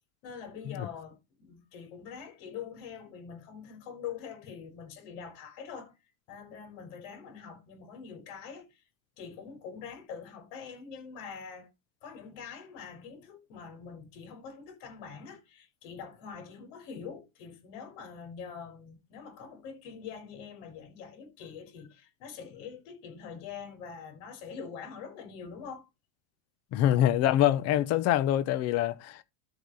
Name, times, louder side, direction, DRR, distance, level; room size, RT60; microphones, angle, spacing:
voice 1, 0.2-5.9 6.3-8.8 9.2-11.7 12.0-25.9, left 6 dB, 65° left, 4.7 m, -44 dB
voice 2, 26.7-29.2, left 12 dB, 40° left, 0.9 m, -25 dB
13.0 x 5.1 x 4.1 m
cardioid pair, 165°, 40 cm